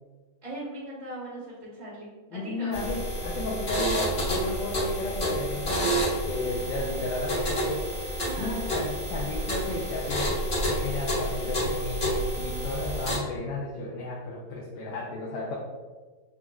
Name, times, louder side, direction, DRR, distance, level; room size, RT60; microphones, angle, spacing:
voice 1, 0.4-2.8 8.2-8.6, right 1 dB, 15° right, -10 dB, 1.1 m, -39 dB
voice 2, 2.3-7.9 8.4-10.4 10.6-15.6, left 2 dB, 85° left, -3 dB, 1.3 m, -33 dB
sound 1, 2.7-13.2, equal, 40° left, 1.0 m, -29 dB
4.0 x 2.3 x 2.3 m, 1.3 s
omnidirectional pair, 2.0 m